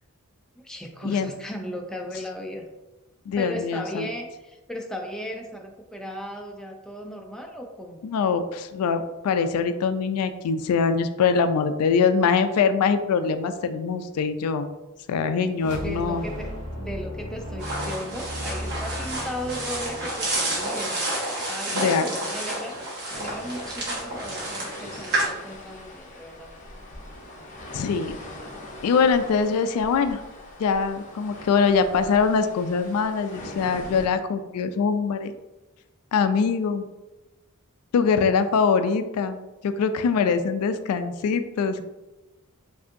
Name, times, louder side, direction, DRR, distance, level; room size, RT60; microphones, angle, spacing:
voice 1, 0.6-2.6 3.4-8.0 15.6-16.5 16.8-21.1 21.5-22.7 23.1-26.5, equal, 5° left, 1 dB, 0.4 m, -36 dB
voice 2, 3.3-4.1 8.0-14.7 15.1-16.2 21.7-22.0 27.7-28.1 28.8-30.2 30.6-35.3 36.1-36.8 37.9-39.4 39.6-41.8, left 5 dB, 70° left, 10 dB, 0.3 m, -23 dB
sound 1, 15.5-20.9, equal, 90° right, 1.1 m, -36 dB
sound 2, 17.6-25.3, right 1 dB, 50° right, 1.2 m, -30 dB
sound 3, 23.1-34.1, left 1 dB, 35° left, 0.7 m, -42 dB
5.0 x 2.6 x 2.6 m, 1.1 s
head